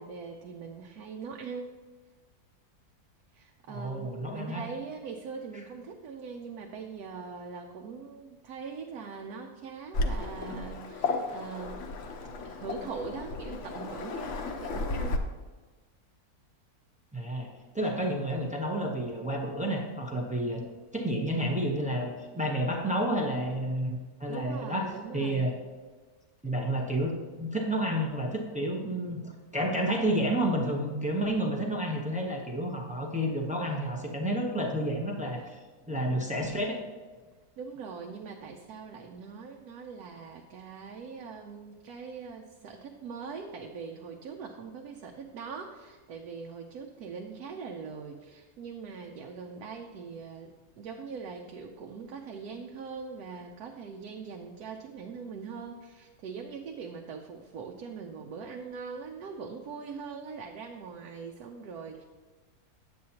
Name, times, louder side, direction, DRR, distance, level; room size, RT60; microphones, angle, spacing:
voice 1, 0.0-1.7 3.3-11.8 12.4-15.2 24.3-25.5 35.4-35.5 37.6-62.0, right 5 dB, 80° right, 2 dB, 1.1 m, -42 dB
voice 2, 3.7-4.6 17.1-17.5 17.7-20.6 20.9-24.9 25.1-25.5 26.4-35.6 35.9-36.8, right 1 dB, 10° right, 0 dB, 0.5 m, -30 dB
Waves surf, 9.9-15.2, left 2 dB, 60° left, 0.9 m, -34 dB
9.3 x 7.7 x 2.8 m, 1.3 s
omnidirectional pair, 1.6 m